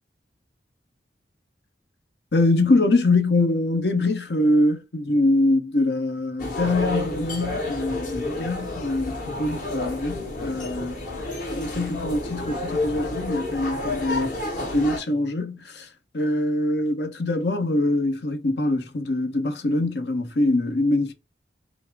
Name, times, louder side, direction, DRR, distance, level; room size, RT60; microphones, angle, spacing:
voice 1, 2.3-11.0 11.5-14.4 14.7-15.9 16.1-21.1, left 2 dB, 70° left, 0.9 m, -23 dB
sound 1, 6.4-15.0, left 2 dB, 50° left, 1.5 m, -30 dB
5.3 x 2.1 x 4.6 m
head